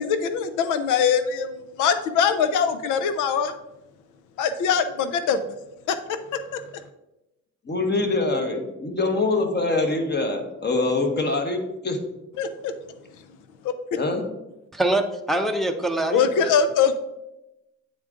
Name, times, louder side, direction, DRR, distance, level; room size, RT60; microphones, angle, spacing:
voice 1, 0.0-1.5 1.8-3.5 4.4-5.4 5.9-6.0 6.3-6.6 12.4-12.7 13.6-13.7 16.1-16.9, left 7 dB, 85° left, 11 dB, 0.5 m, -22 dB
voice 2, 7.7-12.0 14.0-14.3, left 3 dB, 35° left, 4 dB, 1.2 m, -24 dB
voice 3, 14.7-16.5, right 1 dB, ahead, 3 dB, 0.6 m, -24 dB
8.6 x 3.8 x 3.6 m, 0.94 s
cardioid pair, 90°, 30 cm